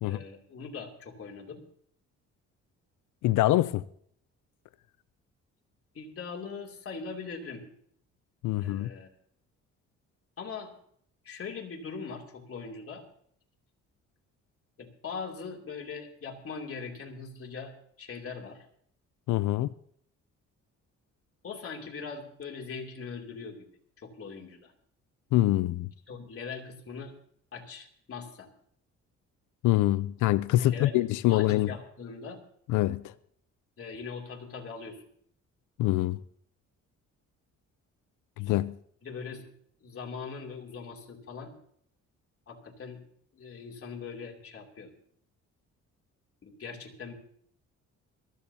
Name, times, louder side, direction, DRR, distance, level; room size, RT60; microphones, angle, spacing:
voice 1, 0.0-1.6 5.9-7.6 8.6-9.1 10.4-10.7 11.2-13.0 14.8-17.7 18.0-18.6 21.4-23.7 24.0-24.7 26.1-27.1 27.5-28.5 30.6-31.0 31.3-32.4 33.8-35.0 39.0-39.5 39.8-41.5 42.5-43.0 43.3-44.9 46.4-47.1, left 5 dB, 50° left, 3.0 m, -41 dB
voice 2, 3.2-3.8 8.4-8.9 19.3-19.7 25.3-25.9 29.6-31.8 32.7-33.1 35.8-36.2 38.4-38.8, left 16 dB, 85° left, 0.5 m, -25 dB
22.5 x 14.0 x 2.8 m
cardioid pair, 90°, 30 cm